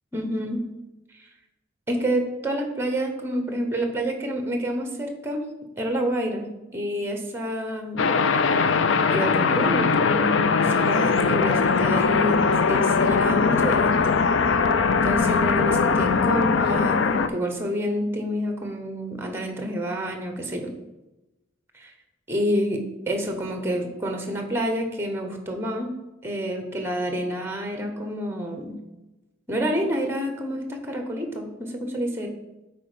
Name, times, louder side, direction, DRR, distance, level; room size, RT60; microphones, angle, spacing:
voice 1, 0.1-0.6 1.1-1.3 1.9-5.5 5.8-6.5 6.7-8.2 9.1-14.2 15.0-20.7 21.8-21.9 22.3-25.9 26.2-28.8 29.5-32.3, equal, 10° right, 4 dB, 1.0 m, -28 dB
sound 1, 8.0-17.3, left 5 dB, 70° left, 0.5 m, -21 dB
8.5 x 4.4 x 5.1 m, 1.0 s
head